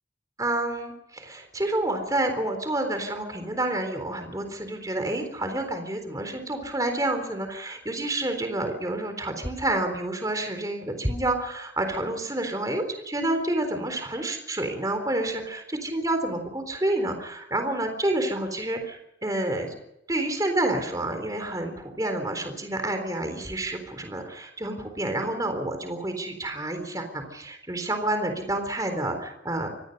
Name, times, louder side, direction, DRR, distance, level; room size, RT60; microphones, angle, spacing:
voice 1, 0.4-19.7 20.1-29.7, right 1 dB, 20° right, 6 dB, 3.9 m, -29 dB
26.0 x 19.5 x 5.5 m, 0.85 s
head